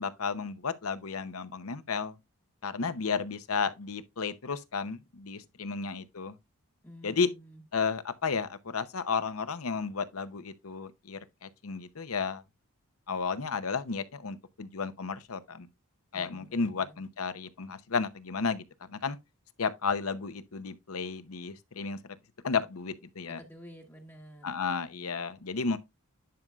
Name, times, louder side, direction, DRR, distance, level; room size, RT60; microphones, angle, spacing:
voice 1, 0.0-2.2 2.6-6.4 7.0-7.3 7.7-12.4 13.1-15.7 16.1-18.6 18.9-19.2 19.6-22.0 22.4-23.4 24.4-25.8, left 5 dB, 65° left, 0.8 m, -33 dB
voice 2, 6.8-7.6 16.1-17.0 23.3-24.6, equal, 10° left, 1.0 m, -50 dB
10.5 x 5.3 x 2.3 m
head